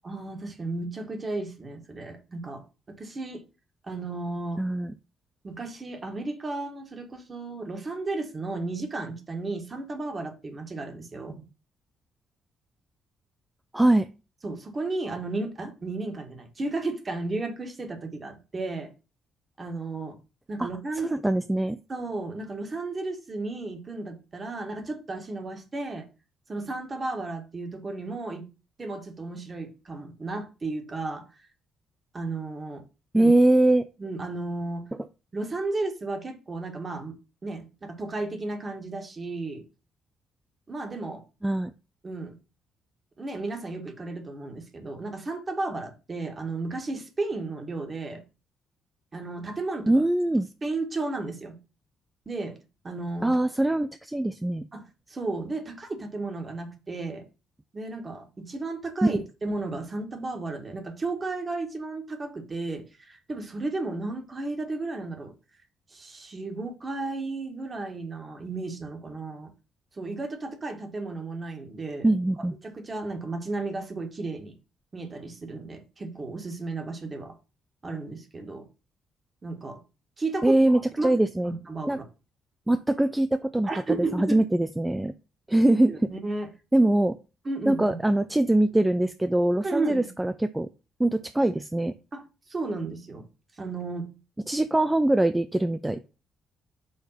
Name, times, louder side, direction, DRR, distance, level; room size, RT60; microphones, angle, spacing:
voice 1, 0.0-3.4 3.9-4.6 5.4-11.4 14.4-18.9 19.6-20.2 20.5-21.1 21.9-26.1 26.5-28.4 28.8-31.2 32.1-32.8 33.1-33.3 34.0-34.8 35.3-37.1 37.4-39.6 40.7-41.2 42.0-42.4 43.2-48.2 49.1-49.9 50.6-51.6 52.3-52.6 52.8-53.3 54.7-57.3 57.7-65.3 65.9-69.5 70.0-72.1 72.6-74.5 74.9-77.4 77.8-78.7 79.4-79.8 80.2-81.1 81.5-82.0 83.7-84.4 85.9-86.5 87.5-88.0 89.6-90.1 92.1-93.3 93.6-94.1, right 3 dB, 35° right, 1.8 m, -33 dB
voice 2, 4.6-4.9 13.7-14.1 20.6-20.7 21.1-21.8 33.1-33.9 41.4-41.7 49.9-50.5 53.2-54.7 59.0-59.2 72.0-72.5 80.4-81.5 81.9-82.0 82.7-85.1 85.5-86.1 86.7-87.2 87.7-90.7 91.0-91.9 94.5-96.1, right 1 dB, 10° right, 0.4 m, -23 dB
5.4 x 3.4 x 5.7 m
figure-of-eight pair, 40°, 0 cm